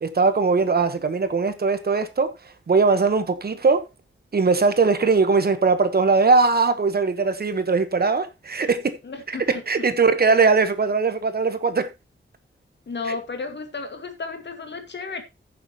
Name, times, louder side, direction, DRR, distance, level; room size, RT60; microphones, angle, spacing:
voice 1, 0.0-2.3 2.7-3.8 4.3-9.0 9.3-11.9, right 4 dB, 50° right, 1.2 m, -20 dB
voice 2, 9.0-9.6 12.9-15.2, left 4 dB, 60° left, 2.0 m, -33 dB
14.5 x 7.1 x 3.0 m
wide cardioid pair, 145°, 21 cm